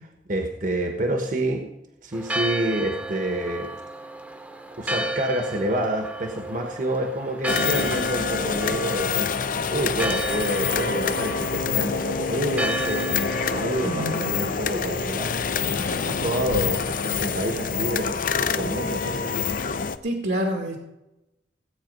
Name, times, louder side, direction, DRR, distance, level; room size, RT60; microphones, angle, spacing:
voice 1, 0.3-1.6 2.0-3.7 4.8-13.1 13.4-15.3 15.7-18.2 18.5-19.3, right 1 dB, 50° right, 4 dB, 1.3 m, -28 dB
Church bell, 2.1-16.2, right 1 dB, 10° right, 0.9 m, -34 dB
sound 1, 7.5-20.0, left 5 dB, 50° left, 0.6 m, -26 dB
voice 2, 13.8-14.3 20.0-20.8, equal, 75° right, 1 dB, 2.0 m, -27 dB
17.0 x 8.5 x 5.4 m, 0.94 s
head